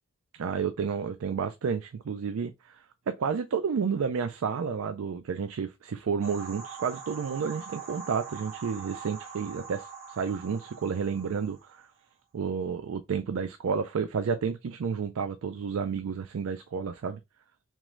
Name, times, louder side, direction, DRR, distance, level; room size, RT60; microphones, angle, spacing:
voice 1, 0.4-11.9 12.3-17.2, right 6 dB, 85° right, 0.4 m, -31 dB
sound 1, 6.2-11.9, right 5 dB, 65° right, 1.6 m, -43 dB
3.7 x 3.1 x 3.0 m
head